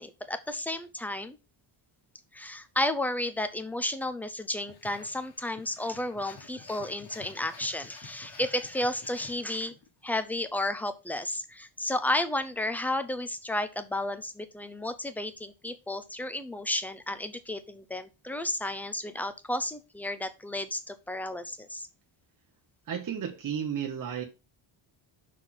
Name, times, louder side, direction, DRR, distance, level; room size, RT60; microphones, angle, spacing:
voice 1, 0.0-1.4 2.3-9.7 10.0-21.9, left 1 dB, 5° left, 0.6 m, -32 dB
sound 1, 4.7-9.9, left 5 dB, 50° left, 1.5 m, -51 dB
voice 2, 22.9-24.2, right 8 dB, 40° right, 1.0 m, -33 dB
6.1 x 4.2 x 5.7 m
wide cardioid pair, 160°, 49 cm